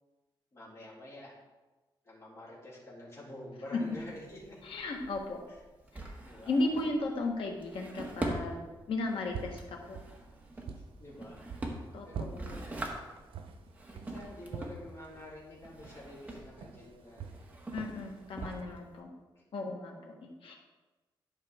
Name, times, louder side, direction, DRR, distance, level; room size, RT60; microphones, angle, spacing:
voice 1, 0.5-1.3 2.0-4.6 5.5-5.6 6.2-6.7 10.5-11.4 12.0-12.8 13.9-17.6 18.4-18.8 19.3-19.4, left 1 dB, 30° left, -6 dB, 3.0 m, -48 dB
Drawer open or close, 3.8-19.0, right 1 dB, 15° right, 1.2 m, -43 dB
voice 2, 4.6-5.4 5.9-6.1 6.5-10.0 11.9-12.4 17.7-19.1 19.5-20.5, left 2 dB, 80° left, 1 dB, 1.4 m, -35 dB
sound 1, 9.1-18.6, right 6 dB, 85° right, 0.7 m, -46 dB
11.5 x 5.6 x 3.6 m, 1.2 s
wide cardioid pair, 140°, 9 cm